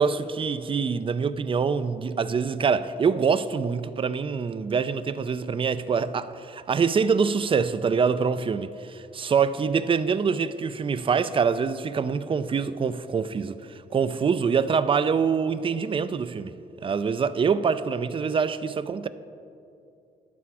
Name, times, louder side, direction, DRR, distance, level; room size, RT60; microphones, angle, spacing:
voice 1, 0.0-16.5 16.8-19.1, right 6 dB, 30° right, 0.3 m, -25 dB
11.0 x 8.4 x 4.8 m
cardioid pair, 105°, 18 cm